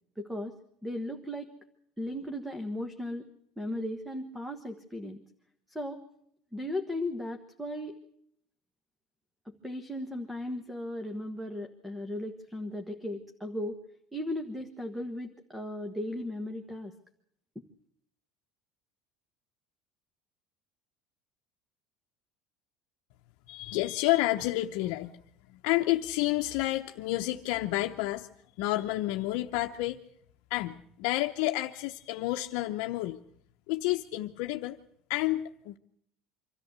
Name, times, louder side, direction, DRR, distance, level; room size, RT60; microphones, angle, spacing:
voice 1, 0.2-0.5 0.8-1.5 2.0-3.3 3.6-5.2 5.7-6.0 6.5-8.0 9.4-13.8 14.1-16.9, left 1 dB, 5° right, 7 dB, 1.3 m, -36 dB
voice 2, 23.5-25.2 25.5-28.3 28.6-30.0 30.5-33.2 33.7-34.8 35.1-35.8, left 17 dB, 75° left, 4 dB, 0.8 m, -30 dB
25.0 x 13.5 x 8.1 m, 0.69 s
cardioid pair, 150°, 0 cm